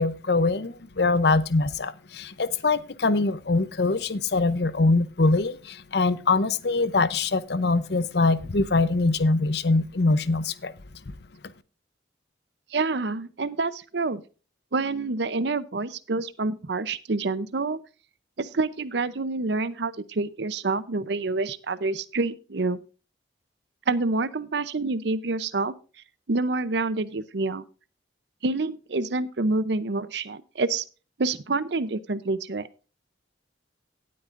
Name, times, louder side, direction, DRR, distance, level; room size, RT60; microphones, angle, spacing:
voice 1, 0.0-10.7, left 3 dB, 60° left, 16 dB, 0.7 m, -23 dB
voice 2, 12.7-14.2 14.7-17.8 18.4-22.8 23.9-25.7 26.3-27.6 28.4-30.8 31.2-32.7, right 3 dB, 65° right, 15 dB, 0.7 m, -27 dB
17.5 x 8.5 x 2.5 m, 0.35 s
head